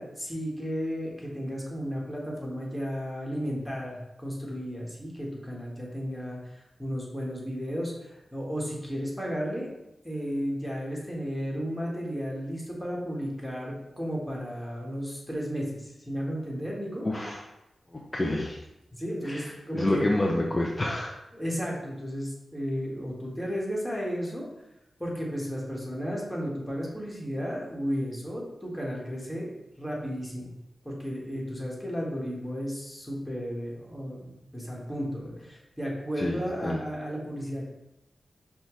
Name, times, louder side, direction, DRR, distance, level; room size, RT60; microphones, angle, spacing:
voice 1, 0.0-9.7 10.0-17.0 19.0-20.1 21.3-24.5 25.0-29.5 29.8-30.6 30.8-37.6, equal, ahead, -4 dB, 1.4 m, -33 dB
voice 2, 17.0-17.4 17.9-18.6 19.2-21.1 36.2-36.8, left 1 dB, 30° left, -1 dB, 0.5 m, -28 dB
5.5 x 2.3 x 3.1 m, 0.90 s
cardioid pair, 45°, 0 cm